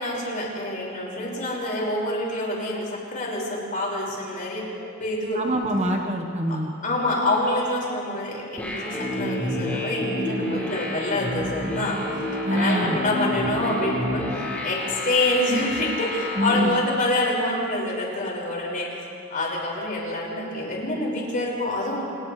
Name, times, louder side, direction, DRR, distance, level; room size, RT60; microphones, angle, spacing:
voice 1, 0.0-4.7 5.0-5.4 6.5-6.6 6.8-12.0 12.5-18.9 19.3-22.0, left 1 dB, 40° left, -3 dB, 5.7 m, -26 dB
voice 2, 5.3-6.7 12.4-13.0 16.3-16.7, equal, 30° right, 2 dB, 1.4 m, -24 dB
sound 1, 8.6-16.6, left 1 dB, 5° left, 4.8 m, -29 dB
30.0 x 28.5 x 3.4 m, 2.5 s
head